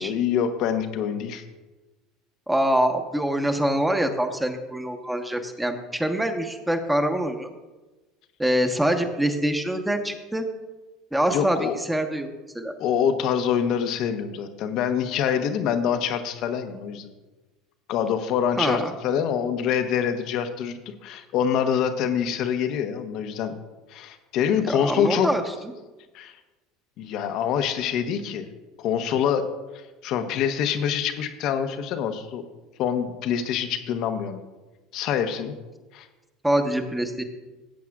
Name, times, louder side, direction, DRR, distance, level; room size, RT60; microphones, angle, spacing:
voice 1, 0.0-1.4 11.3-11.8 12.8-17.1 17.9-23.5 23.9-25.3 26.1-26.3 27.0-28.5 28.8-29.4 30.0-32.4 32.8-34.4 34.9-35.5 35.9-36.1, left 8 dB, 60° left, 8 dB, 1.0 m, -25 dB
voice 2, 2.5-7.5 8.4-10.4 11.1-12.3 12.5-12.7 18.6-18.9 24.6-25.4 36.4-37.2, right 1 dB, 5° right, 5 dB, 1.3 m, -24 dB
16.5 x 8.3 x 2.4 m, 1.2 s
hypercardioid pair, 75°, 0 cm